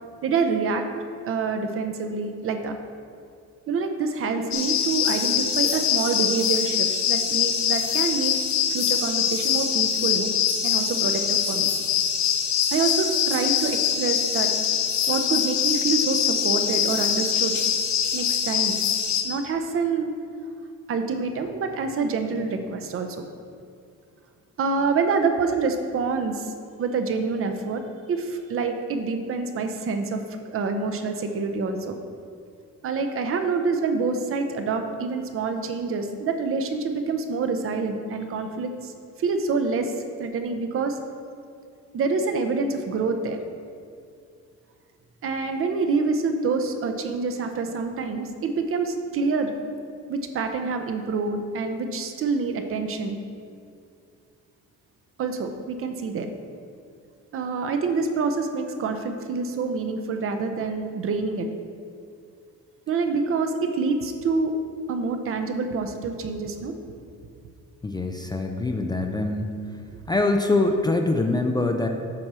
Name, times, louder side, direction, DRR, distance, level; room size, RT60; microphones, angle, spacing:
voice 1, 0.2-0.8 1.2-2.7 3.7-8.3 8.7-10.3 10.6-11.7 12.7-14.5 15.1-17.5 18.1-18.8 19.2-20.1 20.9-23.3 24.6-26.5 26.8-27.8 28.1-30.2 30.5-32.0 32.8-38.9 39.2-39.9 40.2-41.0 41.9-43.4 45.2-49.5 50.1-53.2 55.2-56.3 57.3-61.5 62.9-64.5 64.9-66.7, right 4 dB, 50° right, 6 dB, 0.6 m, -26 dB
sound 1, 4.5-19.2, left 8 dB, 65° left, 0.8 m, -23 dB
voice 2, 67.8-69.8 70.1-71.9, left 2 dB, 15° left, 3 dB, 0.3 m, -24 dB
7.7 x 4.3 x 6.1 m, 2.3 s
cardioid pair, 165°, 29 cm